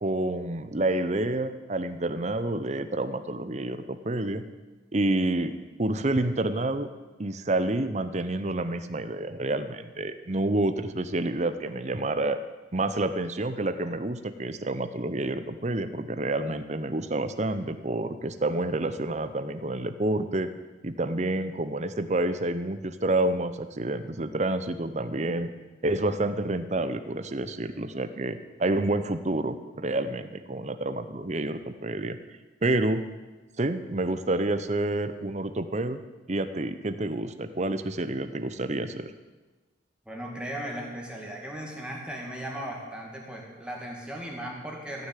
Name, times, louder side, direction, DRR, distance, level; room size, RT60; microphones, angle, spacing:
voice 1, 0.0-4.4 4.9-5.5 5.8-6.9 7.2-12.4 12.7-20.5 20.8-25.5 25.8-32.2 32.6-33.1 33.6-36.0 36.3-39.1, right 2 dB, 35° right, 11 dB, 0.8 m, -28 dB
voice 2, 40.1-45.1, right 1 dB, 5° right, -1 dB, 2.2 m, -37 dB
15.0 x 6.7 x 9.2 m, 1.2 s
head